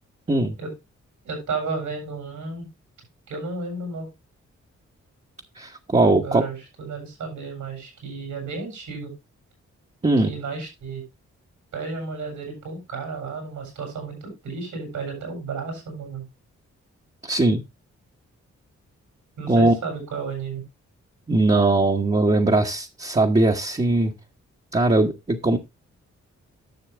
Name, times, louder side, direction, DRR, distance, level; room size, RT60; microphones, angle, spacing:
voice 1, 1.2-2.7 3.3-4.1 6.0-9.1 10.2-11.0 11.7-16.2 19.4-20.6, right 4 dB, 85° right, 2 dB, 6.9 m, -33 dB
voice 2, 5.6-6.4 10.0-10.3 17.2-17.6 19.5-19.7 21.3-24.1 24.7-25.6, right 2 dB, 20° right, 0 dB, 1.3 m, -20 dB
10.5 x 6.8 x 3.4 m, 0.23 s
cardioid pair, 60°, 30 cm